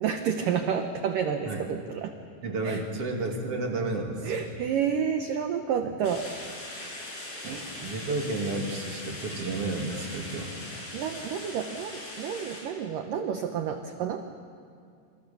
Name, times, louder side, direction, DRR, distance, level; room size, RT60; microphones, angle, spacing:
voice 1, 0.0-2.1 2.6-2.8 4.2-6.3 7.4-7.7 10.9-14.2, right 7 dB, 80° right, 6 dB, 1.9 m, -30 dB
voice 2, 2.4-4.4 7.4-10.5, right 2 dB, 40° right, 1 dB, 2.8 m, -32 dB
sound 1, 6.0-12.6, left 1 dB, 55° left, 8.2 m, -40 dB
27.0 x 27.0 x 7.0 m, 2.4 s
omnidirectional pair, 5.4 m